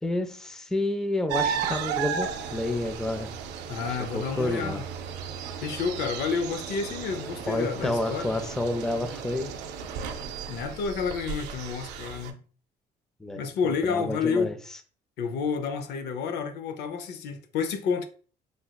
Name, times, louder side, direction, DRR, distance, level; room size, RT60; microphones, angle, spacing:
voice 1, 0.0-3.3 3.9-4.8 7.5-9.5 13.2-14.6, left 1 dB, 5° left, 0.4 m, -30 dB
sound 1, 1.3-12.3, right 7 dB, 90° right, 0.4 m, -35 dB
voice 2, 3.7-4.9 5.6-8.3 10.5-12.4 13.4-14.5 15.2-18.1, left 5 dB, 75° left, 0.5 m, -30 dB
3.2 x 2.8 x 2.2 m
cardioid pair, 110°, 17 cm